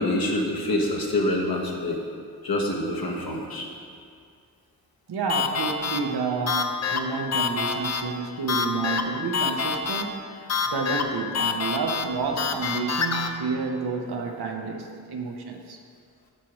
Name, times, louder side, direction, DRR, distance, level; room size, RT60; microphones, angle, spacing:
voice 1, 0.0-2.0 2.4-3.7, left 1 dB, 70° left, -1 dB, 1.2 m, -26 dB
voice 2, 5.1-15.8, right 4 dB, 90° right, 2 dB, 0.8 m, -30 dB
sound 1, 5.3-13.3, left 5 dB, 45° left, 0.5 m, -28 dB
12.0 x 4.8 x 3.0 m, 2.3 s
cardioid pair, 65°, 37 cm